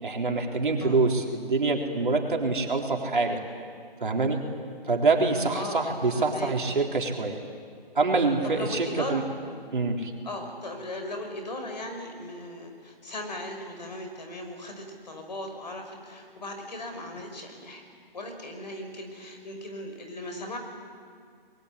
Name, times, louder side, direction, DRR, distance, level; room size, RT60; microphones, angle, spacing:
voice 1, 0.0-3.4 4.0-4.4 4.9-7.4 8.0-9.2 9.7-10.1, right 3 dB, 55° right, 1 dB, 4.0 m, -25 dB
voice 2, 5.5-6.5 8.4-9.2 10.2-17.8 18.1-20.6, left 1 dB, 45° left, 4 dB, 5.7 m, -37 dB
26.0 x 22.0 x 9.8 m, 2.1 s
figure-of-eight pair, 170°, 30 cm